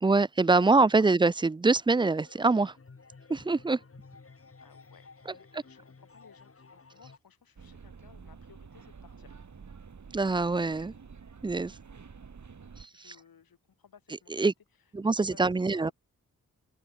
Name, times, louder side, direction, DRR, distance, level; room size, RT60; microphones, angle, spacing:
voice 1, 0.0-2.7 3.3-3.8 5.3-5.6 10.1-10.9 11.4-11.8 12.8-13.2 14.3-14.5 14.9-15.9, right 3 dB, 15° right, 0.4 m, -25 dB
sound 1, 2.0-7.2, left 4 dB, 40° left, 2.5 m, -54 dB
voice 2, 4.6-9.4 12.9-14.5 15.0-15.9, left 7 dB, 80° left, 5.2 m, -59 dB
sound 2, 7.6-12.9, right 5 dB, 55° right, 2.4 m, -49 dB
open air
cardioid pair, 50°, 35 cm